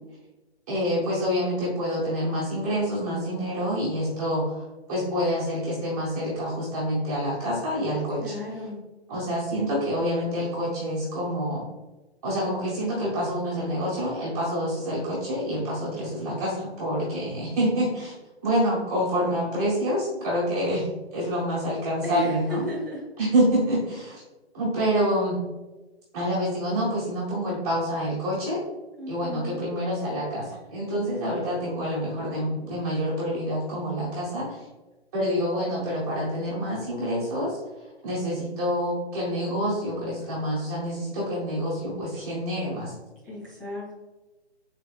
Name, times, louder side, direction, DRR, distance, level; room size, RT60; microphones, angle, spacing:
voice 1, 0.7-8.6 9.1-11.6 12.2-18.1 18.4-22.6 23.2-24.2 24.5-25.4 26.1-28.6 29.1-34.6 35.1-37.6 38.0-42.9, equal, 15° right, -10 dB, 0.8 m, -27 dB
voice 2, 8.2-8.8 22.0-23.0 29.0-29.6 43.3-44.0, equal, ahead, -10 dB, 1.3 m, -34 dB
4.5 x 3.8 x 2.4 m, 1.1 s
hypercardioid pair, 165°, 33 cm